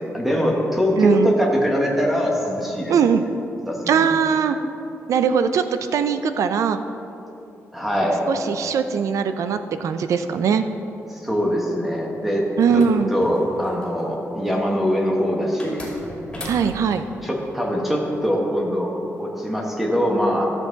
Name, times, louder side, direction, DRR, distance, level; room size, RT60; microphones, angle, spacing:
voice 1, 0.0-3.0 3.7-4.1 7.7-8.3 11.1-12.4 12.7-15.8 17.2-18.9 19.2-20.5, equal, 5° right, -1 dB, 1.4 m, -22 dB
voice 2, 1.0-1.3 2.9-3.2 3.9-4.6 5.1-5.6 5.9-6.8 8.3-10.6 12.6-13.1 16.4-17.0, right 7 dB, 80° right, 9 dB, 0.5 m, -20 dB
sound 1, 12.6-14.0 15.6-17.0, left 1 dB, 15° left, 2.6 m, -36 dB
13.5 x 7.3 x 4.0 m, 2.9 s
wide cardioid pair, 130°, 5 cm